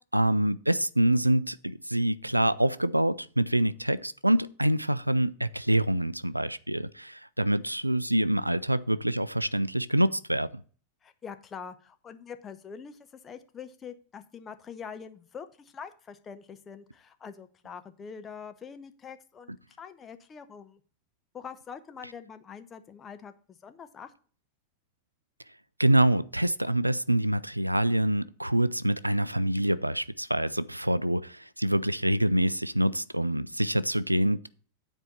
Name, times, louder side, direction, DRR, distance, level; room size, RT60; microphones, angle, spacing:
voice 1, 0.1-10.5 25.8-34.5, right 1 dB, 85° right, 0.3 m, -26 dB
voice 2, 11.0-20.8 21.3-24.1, left 6 dB, 20° left, 0.8 m, -44 dB
9.4 x 4.5 x 6.6 m
figure-of-eight pair, 90°, 0 cm